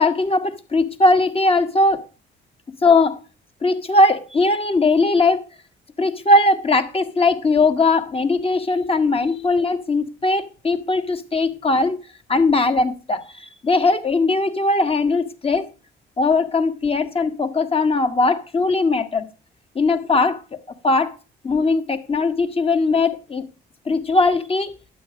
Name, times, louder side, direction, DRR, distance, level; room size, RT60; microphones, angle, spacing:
voice 1, 0.0-2.1 2.8-3.2 3.6-5.4 6.0-12.0 12.3-15.7 16.2-19.3 19.7-20.4 20.8-21.2 21.4-23.4 23.8-24.8, left 3 dB, 30° left, 1.5 m, -19 dB
11.5 x 8.5 x 5.0 m
cardioid pair, 90°, 20 cm